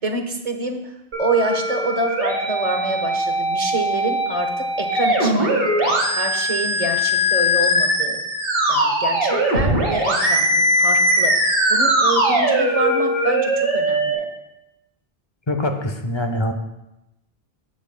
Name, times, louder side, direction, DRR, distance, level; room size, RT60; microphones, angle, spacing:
voice 1, 0.0-8.2 8.7-14.3, right 2 dB, 40° right, 4 dB, 1.0 m, -27 dB
sound 1, 1.1-14.1, equal, 65° right, 2.0 m, -20 dB
voice 2, 15.5-16.5, left 1 dB, 30° left, 6 dB, 0.8 m, -23 dB
13.5 x 7.6 x 2.2 m, 0.92 s
omnidirectional pair, 1.1 m